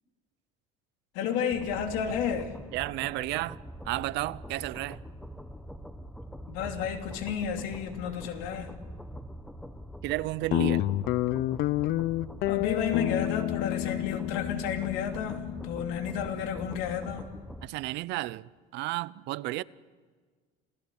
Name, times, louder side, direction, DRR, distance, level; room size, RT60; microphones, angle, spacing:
voice 1, 1.1-2.5 6.5-8.7 12.5-17.3, left 8 dB, 85° left, 2.9 m, -32 dB
sound 1, 1.5-17.7, equal, ahead, 1.0 m, -44 dB
voice 2, 2.7-3.6 3.8-5.0 10.0-10.9 17.6-19.6, right 19 dB, 60° right, 0.6 m, -32 dB
Guitar, 10.5-17.2, left 15 dB, 55° left, 0.6 m, -30 dB
28.0 x 16.0 x 8.2 m
cardioid pair, 155°, 20 cm